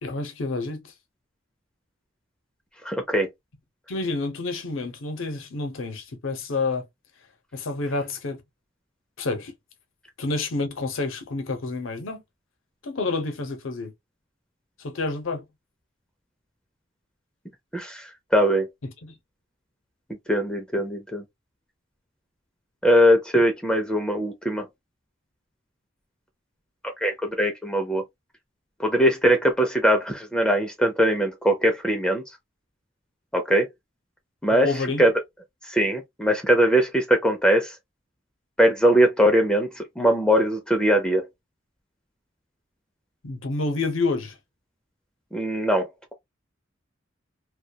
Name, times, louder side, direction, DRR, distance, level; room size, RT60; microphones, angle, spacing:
voice 1, 0.0-0.8 3.9-6.9 7.5-8.4 9.2-9.5 10.2-12.2 12.8-13.9 14.8-15.4 18.8-19.1 34.6-35.1 43.2-44.4, left 3 dB, 85° left, 0.7 m, -29 dB
voice 2, 2.8-3.3 17.7-18.1 18.3-18.7 20.3-21.2 22.8-24.7 27.0-28.0 28.8-32.2 33.3-33.7 34.4-34.7 35.0-35.1 35.7-37.7 38.6-41.2 45.3-46.1, equal, 5° left, 0.4 m, -21 dB
2.2 x 2.2 x 2.6 m
head